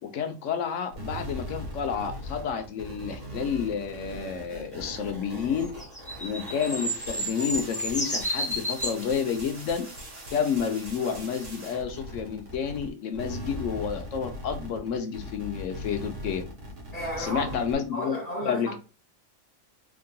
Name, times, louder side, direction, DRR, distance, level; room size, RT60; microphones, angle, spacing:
voice 1, 0.0-5.7 6.2-9.9 10.3-16.4 17.2-18.2 18.4-18.7, left 7 dB, 75° left, 1.0 m, -30 dB
sound 1, 0.9-12.9 13.1-17.7, equal, 70° right, 1.7 m, -40 dB
sound 2, 5.6-9.1 10.0-10.1, equal, 10° left, 0.5 m, -31 dB
voice 2, 16.9-17.5 17.9-18.7, equal, 30° left, 1.4 m, -33 dB
3.8 x 3.7 x 2.2 m
omnidirectional pair, 1.3 m